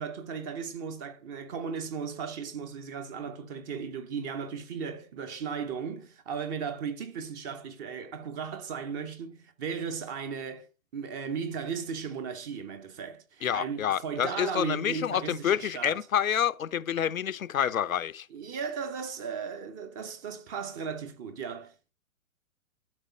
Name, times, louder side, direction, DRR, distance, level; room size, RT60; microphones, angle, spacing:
voice 1, 0.0-10.7 10.9-16.0 18.3-21.7, right 6 dB, 15° right, 0.5 m, -36 dB
voice 2, 13.4-18.3, left 9 dB, 75° left, 0.7 m, -28 dB
12.0 x 5.3 x 5.4 m
figure-of-eight pair, 120°, 41 cm